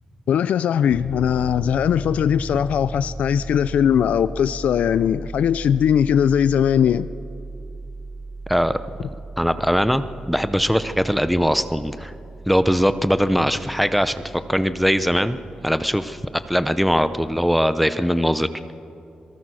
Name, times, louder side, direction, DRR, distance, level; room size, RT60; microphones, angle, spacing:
voice 1, 0.3-7.1, left 8 dB, 85° left, 15 dB, 0.4 m, -20 dB
Piano, 0.9-17.6, right 2 dB, 30° right, 1.9 m, -37 dB
voice 2, 8.5-8.8 9.4-12.1 12.5-14.1 14.5-15.4 15.6-16.2 16.5-18.5, equal, ahead, 12 dB, 0.7 m, -20 dB
26.5 x 19.0 x 6.3 m, 2.6 s
wide cardioid pair, 155°, 2 cm